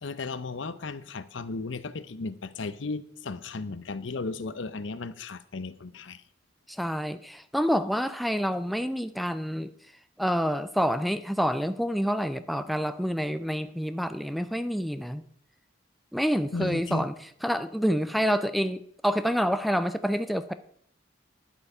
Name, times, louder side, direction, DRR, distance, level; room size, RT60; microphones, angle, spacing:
voice 1, 0.0-6.2 16.5-17.1, left 3 dB, 75° left, 0.7 m, -35 dB
voice 2, 6.7-9.7 10.2-15.2 16.1-17.1 17.4-20.5, equal, ahead, 0.4 m, -27 dB
11.0 x 8.2 x 5.5 m
head